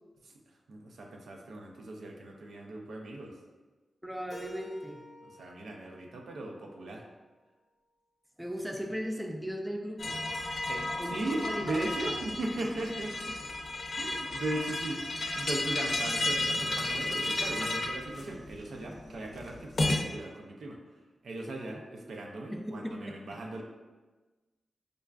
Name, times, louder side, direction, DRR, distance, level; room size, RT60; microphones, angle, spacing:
voice 1, 0.2-3.4 5.2-7.0 10.7-13.4 14.0-20.8 21.2-23.6, right 2 dB, 90° right, 0 dB, 0.5 m, -38 dB
voice 2, 4.0-5.0 8.4-10.2 11.0-12.2 22.5-23.1, equal, 5° right, 3 dB, 0.3 m, -37 dB
Keyboard (musical), 4.3-7.2, equal, 50° right, 0.8 m, -52 dB
sound 1, 10.0-20.0, left 2 dB, 65° left, 0.5 m, -33 dB
5.0 x 2.3 x 2.2 m, 1.2 s
wide cardioid pair, 90°, 0 cm